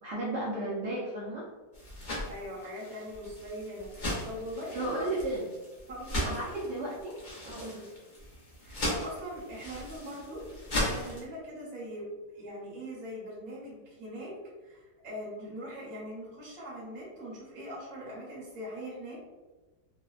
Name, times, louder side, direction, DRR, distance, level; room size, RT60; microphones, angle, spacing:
voice 1, 0.0-1.5 4.7-5.4 6.2-7.1 7.4-7.8, right 2 dB, 70° right, -6 dB, 1.1 m, -34 dB
sound 1, 1.7-11.2, left 1 dB, 50° left, 0.5 m, -37 dB
voice 2, 2.3-5.1 5.9-6.6 7.6-7.9 8.6-10.4 10.7-12.1 12.3-14.3 14.6-19.2, equal, 55° right, -6 dB, 1.4 m, -41 dB
3.4 x 2.1 x 2.3 m, 1.2 s
omnidirectional pair, 2.0 m